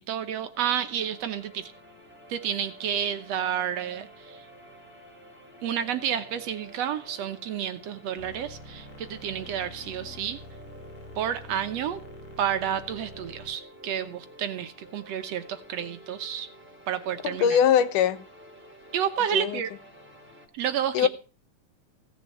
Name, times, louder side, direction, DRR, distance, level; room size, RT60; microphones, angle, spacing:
voice 1, 0.1-1.7 2.3-4.5 5.6-10.4 11.2-12.0 12.4-16.5 16.9-17.6 18.9-19.7 20.5-21.1, right 9 dB, 65° right, 1.9 m, -30 dB
sound 1, 0.5-20.5, right 1 dB, 5° right, 3.0 m, -50 dB
sound 2, 8.2-13.5, left 1 dB, 30° left, 1.8 m, -47 dB
voice 2, 17.2-18.2 19.3-19.6 20.9-21.1, left 9 dB, 90° left, 2.6 m, -22 dB
17.0 x 6.9 x 7.6 m
omnidirectional pair, 3.5 m